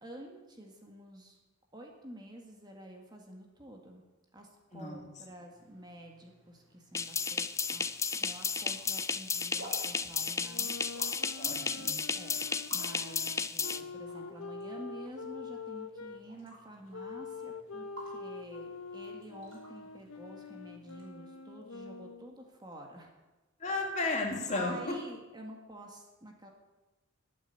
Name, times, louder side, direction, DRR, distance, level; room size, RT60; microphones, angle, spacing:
voice 1, 0.0-1.4 1.7-4.0 4.3-10.8 12.1-12.4 12.7-23.2 24.5-26.5, right 1 dB, 20° right, 1 dB, 1.8 m, -49 dB
voice 2, 4.7-5.0 11.4-12.0 23.6-24.8, left 2 dB, 35° left, 2 dB, 2.2 m, -33 dB
sound 1, 5.5-21.1, right 1 dB, 60° right, 5.3 m, -55 dB
sound 2, 6.9-13.8, left 5 dB, 15° left, 0.4 m, -33 dB
sound 3, 10.4-16.2 16.9-22.4, left 4 dB, 80° left, 0.8 m, -45 dB
12.5 x 9.0 x 8.4 m, 1.1 s
head